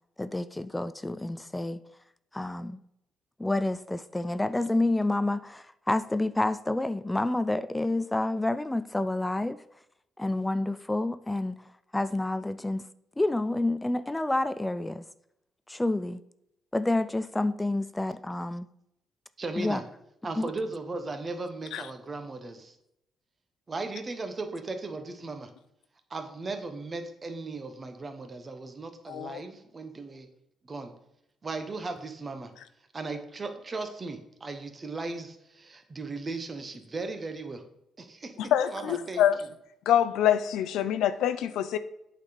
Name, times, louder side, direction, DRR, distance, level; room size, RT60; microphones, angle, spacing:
voice 1, 0.2-1.8 2.3-2.8 3.4-9.6 10.2-11.6 11.9-12.9 13.2-15.0 15.7-16.2 16.7-18.7 19.6-19.8 20.4-20.5, left 2 dB, 10° left, 0.3 m, -28 dB
voice 2, 19.4-19.8 20.2-22.8 23.7-25.5 26.1-30.3 30.6-30.9 31.4-32.5 32.9-37.7 38.0-39.2, right 3 dB, 30° right, 1.1 m, -37 dB
voice 3, 29.1-29.4 38.4-39.4 39.9-41.8, left 10 dB, 85° left, 0.5 m, -25 dB
8.3 x 4.1 x 5.0 m
cardioid pair, 90°, 0 cm